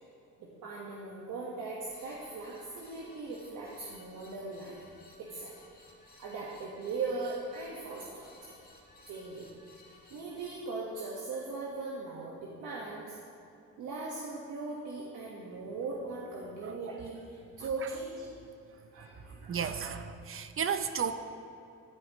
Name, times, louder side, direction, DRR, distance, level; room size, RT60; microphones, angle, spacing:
voice 1, 0.4-4.8 5.2-5.5 6.2-8.6 9.1-9.5 10.1-13.2 13.8-18.2 18.9-19.6, right 3 dB, 80° right, -4 dB, 1.5 m, -39 dB
sound 1, 1.8-10.6, left 2 dB, 30° left, 2.7 m, -58 dB
voice 2, 19.5-21.1, right 7 dB, 45° right, 9 dB, 0.7 m, -33 dB
14.0 x 10.5 x 3.1 m, 2.7 s
cardioid pair, 90°, 30 cm